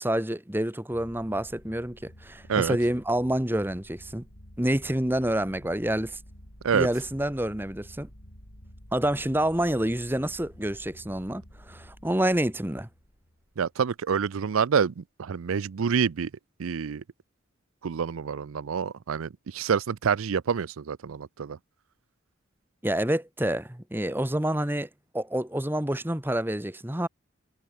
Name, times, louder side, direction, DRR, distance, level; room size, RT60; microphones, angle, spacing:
voice 1, 0.0-4.2 4.6-6.2 6.7-8.1 8.9-12.9 22.8-24.9 25.1-27.1, right 1 dB, 10° right, 1.1 m, -28 dB
sound 1, 0.9-13.8, equal, 70° left, 7.6 m, -50 dB
voice 2, 13.6-16.3 16.6-17.0 17.8-21.6, right 6 dB, 85° right, 0.5 m, -27 dB
head